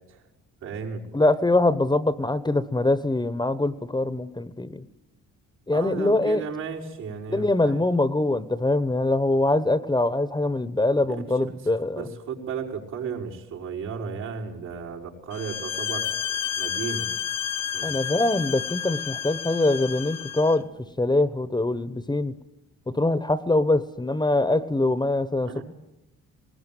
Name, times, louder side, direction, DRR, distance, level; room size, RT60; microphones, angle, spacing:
voice 1, 0.6-1.0 5.7-7.8 11.1-11.5 12.0-17.1 17.7-18.0 25.4-25.6, right 6 dB, 80° right, -3 dB, 5.6 m, -34 dB
voice 2, 1.1-4.8 5.7-6.4 7.3-12.0 17.8-20.7 21.0-22.4 22.9-25.6, left 2 dB, 15° left, 15 dB, 1.0 m, -23 dB
sound 1, 15.3-20.6, left 10 dB, 60° left, 0.9 m, -31 dB
19.5 x 19.0 x 9.4 m, 0.89 s
cardioid pair, 90°, 30 cm